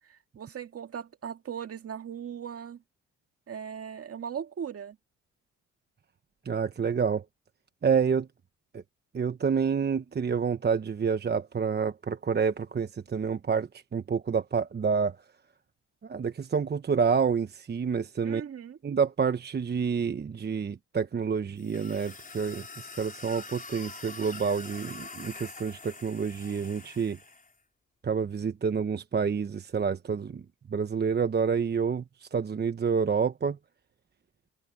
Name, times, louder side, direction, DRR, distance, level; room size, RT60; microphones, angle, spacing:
voice 1, 0.0-2.8 3.5-5.0 18.2-18.8, right 8 dB, 50° right, 2.1 m, -38 dB
voice 2, 6.4-7.2 7.8-8.3 8.7-8.8 9.1-15.2 16.0-18.4 18.8-27.2 28.0-33.6, right 6 dB, 35° right, 1.0 m, -28 dB
sound 1, 21.6-27.5, left 4 dB, 30° left, 5.1 m, -45 dB
cardioid pair, 90°, 30 cm